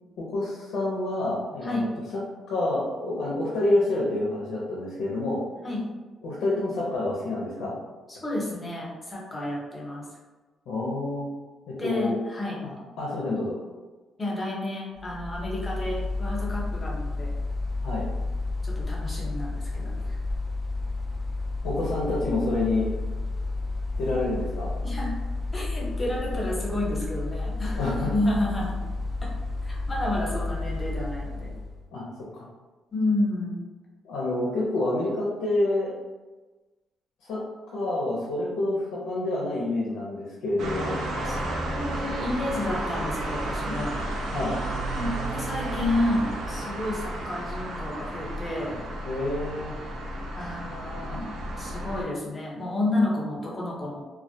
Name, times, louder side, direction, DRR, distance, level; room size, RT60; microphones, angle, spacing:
voice 1, 0.2-1.8 2.5-5.4 6.2-7.8 10.7-11.3 11.7-12.2 13.0-13.5 17.8-18.1 21.6-22.9 24.0-24.7 27.7-28.1 31.9-32.1 32.3-32.5 34.0-35.9 37.2-37.4 37.7-41.0 44.3-44.6 49.1-49.7, left 2 dB, 85° left, -5 dB, 0.5 m, -27 dB
voice 2, 8.1-10.1 11.8-12.6 14.2-17.3 18.6-20.2 24.8-25.1 25.5-28.8 29.2-29.3 29.6-31.5 32.9-33.6 41.2-41.4 41.7-44.0 44.9-48.8 50.4-51.3 51.6-54.0, left 1 dB, 20° left, -4 dB, 0.8 m, -30 dB
Mechanical fan, 15.0-31.8, left 2 dB, 5° right, 0.4 m, -31 dB
sound 1, 40.6-52.0, right 1 dB, 75° right, 0.4 m, -32 dB
2.2 x 2.1 x 2.6 m, 1.2 s
cardioid pair, 90°, 0 cm